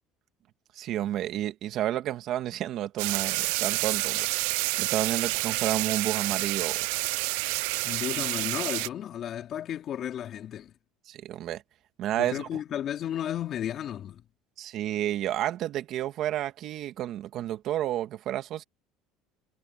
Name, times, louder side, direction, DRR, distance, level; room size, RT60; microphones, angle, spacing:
voice 1, 0.8-6.8 11.1-11.6 12.0-12.5 14.6-18.6, right 12 dB, 55° right, 2.1 m, -31 dB
sound 1, 3.0-8.9, right 27 dB, 80° right, 0.4 m, -29 dB
voice 2, 7.8-10.7 12.2-14.2, left 10 dB, 45° left, 3.3 m, -33 dB
supercardioid pair, 110°, 0 cm